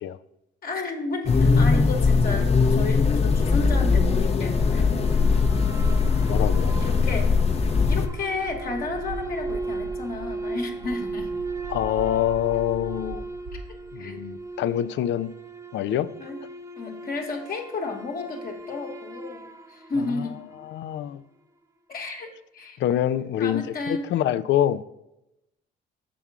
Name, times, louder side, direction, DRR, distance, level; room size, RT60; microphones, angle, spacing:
voice 1, 0.6-5.0 6.8-7.3 7.9-11.3 14.0-14.2 16.2-16.4 16.8-20.4 21.9-22.8 23.4-24.1, left 3 dB, 50° left, 1.2 m, -32 dB
sound 1, 1.3-8.1, left 4 dB, 30° left, 0.7 m, -20 dB
sound 2, 4.2-20.8, right 2 dB, 15° right, 0.5 m, -37 dB
sound 3, 5.8-14.3, right 3 dB, 85° right, 2.5 m, -40 dB
voice 2, 6.3-6.7 11.7-13.3 13.9-15.3 15.7-16.1 20.0-20.2 20.6-21.2 22.8-24.8, left 11 dB, 70° left, 0.4 m, -25 dB
6.9 x 3.6 x 6.0 m
cardioid pair, 90°, 20 cm